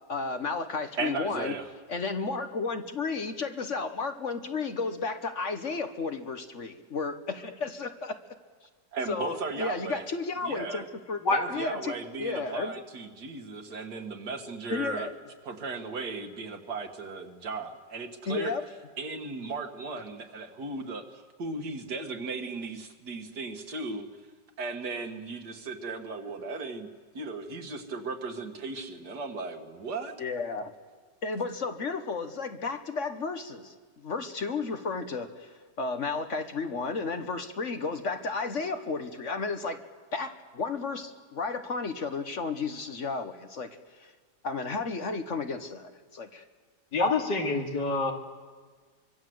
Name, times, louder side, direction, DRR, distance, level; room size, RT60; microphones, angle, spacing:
voice 1, 0.1-1.5 1.9-8.2 9.1-11.2 11.5-12.7 14.7-15.1 18.3-18.6 30.2-30.7 31.2-39.8 40.1-44.1 44.4-46.4, left 4 dB, 45° left, 8 dB, 1.4 m, -33 dB
voice 2, 1.0-1.7 8.9-10.0 10.4-10.8 11.3-15.1 15.5-18.5 19.0-24.1 24.6-26.9 27.1-30.1, right 3 dB, 65° right, 5 dB, 2.2 m, -36 dB
voice 3, 46.9-48.1, left 3 dB, 75° left, 2 dB, 3.1 m, -26 dB
24.5 x 23.5 x 7.9 m, 1.5 s
omnidirectional pair, 1.9 m